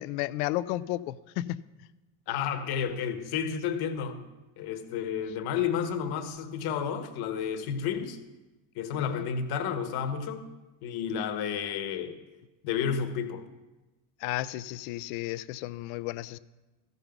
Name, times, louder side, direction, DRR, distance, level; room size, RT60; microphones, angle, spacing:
voice 1, 0.0-1.6 9.0-9.2 14.2-16.4, left 16 dB, 80° left, 17 dB, 0.5 m, -33 dB
voice 2, 2.3-4.2 4.6-8.2 8.7-10.5 10.8-12.2 12.6-13.4, left 7 dB, 65° left, 9 dB, 1.3 m, -31 dB
14.0 x 5.4 x 5.9 m, 1.1 s
supercardioid pair, 85°, 41 cm